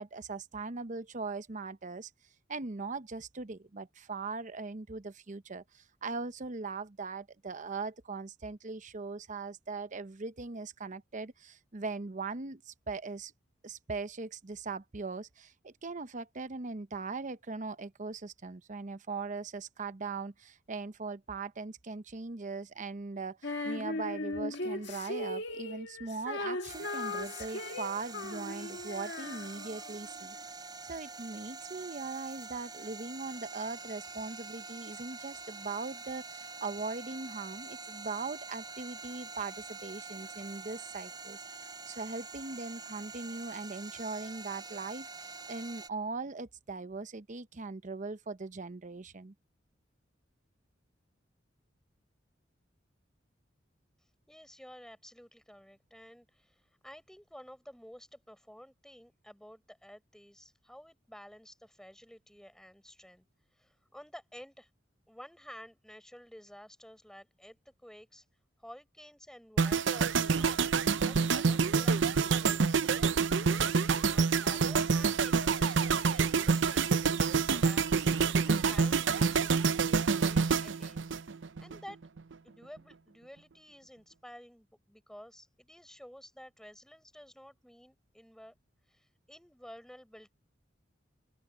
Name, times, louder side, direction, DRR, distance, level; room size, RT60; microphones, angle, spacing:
voice 1, 0.0-2.1 2.5-13.3 13.6-49.3, right 4 dB, 40° right, 0.8 m, -40 dB
Female singing, 23.4-29.9, left 2 dB, 65° left, 1.8 m, -38 dB
sound 1, 26.7-45.9, right 4 dB, 25° right, 4.7 m, -46 dB
voice 2, 54.3-63.2 63.5-64.7 65.1-68.2 68.6-73.1 73.3-81.1 81.6-82.0 82.4-88.5 88.9-90.3, equal, 5° left, 4.8 m, -52 dB
sound 2, 69.6-81.8 82.0-82.3, right 5 dB, 75° right, 0.7 m, -27 dB
open air
head